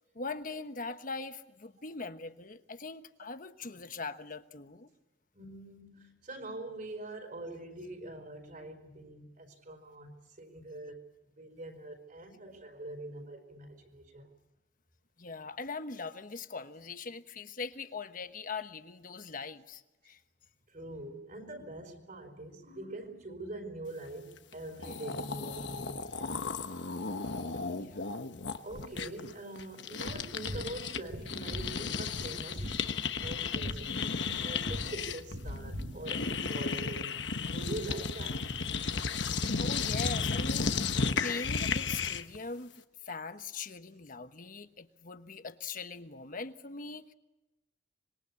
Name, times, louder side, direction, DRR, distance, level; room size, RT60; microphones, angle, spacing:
voice 1, 0.1-4.9 15.2-20.2 27.7-28.1 39.6-40.7 41.2-42.7 43.0-47.1, left 4 dB, 50° left, 9 dB, 1.2 m, -41 dB
voice 2, 5.3-11.0 11.4-14.3 20.7-26.4 28.6-32.8 33.2-33.9 34.4-37.1 37.4-38.4 40.6-40.7, right 2 dB, 50° right, 5 dB, 4.7 m, -44 dB
sound 1, 24.5-24.6 24.8-31.0 31.3-42.4, left 5 dB, 75° left, 1.2 m, -34 dB
sound 2, 30.0-36.3, equal, 80° right, 3.4 m, -42 dB
26.0 x 21.5 x 8.4 m, 0.99 s
head